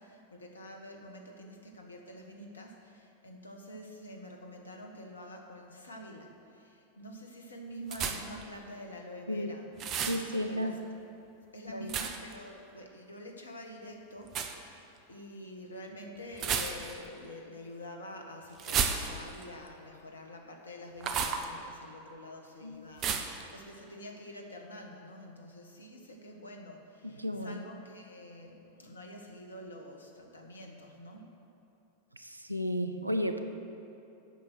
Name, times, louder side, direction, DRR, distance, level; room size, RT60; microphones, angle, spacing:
voice 1, 0.0-10.9 11.5-31.4, left 1 dB, 75° left, 2 dB, 1.3 m, -47 dB
sound 1, 7.9-8.4 9.8-10.2 11.9-12.3 14.3-14.6 16.4-17.1 18.6-19.4 21.0-21.5 23.0-23.4, right 6 dB, 35° right, 0.8 m, -32 dB
voice 2, 10.0-10.8 11.7-12.0 22.6-22.9 27.0-27.6 32.1-33.4, equal, 85° right, 7 dB, 0.6 m, -33 dB
8.1 x 6.3 x 8.1 m, 2.9 s
figure-of-eight pair, 90°, 0 cm